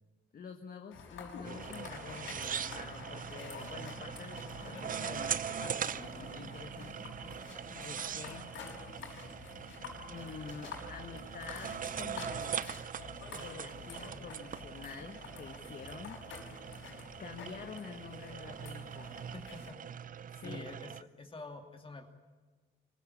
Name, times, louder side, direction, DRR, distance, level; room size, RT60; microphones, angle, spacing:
voice 1, 0.3-7.2 7.8-8.7 10.1-12.6 13.3-16.2 17.2-19.2 20.3-20.7, left 5 dB, 45° left, 4 dB, 1.6 m, -48 dB
sound 1, 0.9-19.7, left 5 dB, 85° left, 5.3 m, -48 dB
sound 2, 1.4-21.0, right 8 dB, 45° right, 0.6 m, -42 dB
voice 2, 19.3-19.8 20.4-22.1, left 3 dB, 25° left, 4 dB, 2.6 m, -47 dB
24.5 x 15.0 x 9.9 m, 1.4 s
cardioid pair, 90°, 20 cm